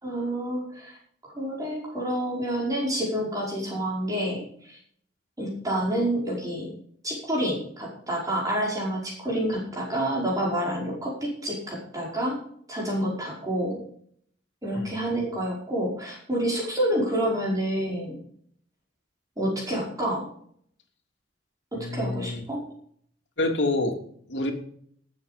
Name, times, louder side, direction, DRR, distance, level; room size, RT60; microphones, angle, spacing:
voice 1, 0.0-1.0 1.2-4.8 5.4-6.7 7.0-12.4 12.7-13.8 14.6-18.2 19.4-20.3 21.7-22.6, right 1 dB, 20° right, -3 dB, 5.2 m, -28 dB
voice 2, 21.7-22.4 23.4-24.0 24.3-24.5, left 2 dB, 75° left, 3 dB, 3.1 m, -27 dB
19.5 x 8.0 x 5.2 m, 0.62 s
head